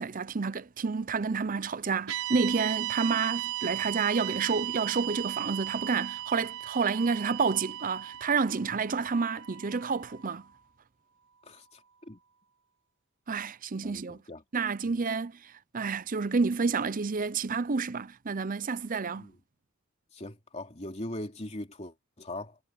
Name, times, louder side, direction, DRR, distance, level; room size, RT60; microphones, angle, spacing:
voice 1, 0.0-10.4 13.3-14.2 14.5-19.3, right 5 dB, 40° right, 0.6 m, -29 dB
sound 1, 2.1-10.4, right 14 dB, 90° right, 6.0 m, -36 dB
voice 2, 11.4-12.2 13.8-14.4 14.9-15.0 19.2-19.3 20.1-22.6, left 1 dB, 30° left, 3.1 m, -41 dB
head